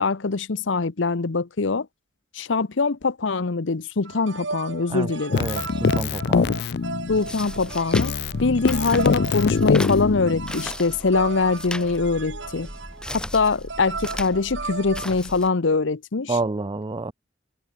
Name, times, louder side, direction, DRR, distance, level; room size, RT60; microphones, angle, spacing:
voice 1, 0.0-1.9 2.3-5.4 7.1-8.1 8.4-12.7 13.1-16.4, left 4 dB, 75° left, 0.8 m, -23 dB
sound 1, 4.1-15.1, right 4 dB, 70° right, 2.6 m, -36 dB
voice 2, 4.9-6.6 16.3-17.1, right 3 dB, 25° right, 0.4 m, -29 dB
Keyboard (musical), 5.3-7.6 7.9-10.7, left 5 dB, 60° left, 0.4 m, -23 dB
sound 2, 7.1-15.5, left 1 dB, 5° left, 3.5 m, -36 dB
head